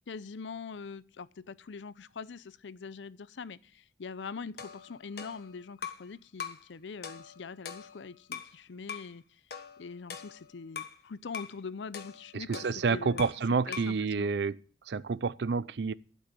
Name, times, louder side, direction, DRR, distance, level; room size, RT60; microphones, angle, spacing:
voice 1, 0.1-9.2 9.8-13.3 13.7-14.3, left 5 dB, 85° left, 0.5 m, -43 dB
sound 1, 4.6-6.1 6.4-6.7 7.0-8.6 8.9-9.1 9.5-11.0 11.3-11.6 11.9-13.5 13.7-14.0, left 7 dB, 55° left, 1.3 m, -43 dB
voice 2, 12.3-14.6 14.9-15.9, right 5 dB, 70° right, 0.5 m, -29 dB
12.0 x 6.3 x 9.1 m
head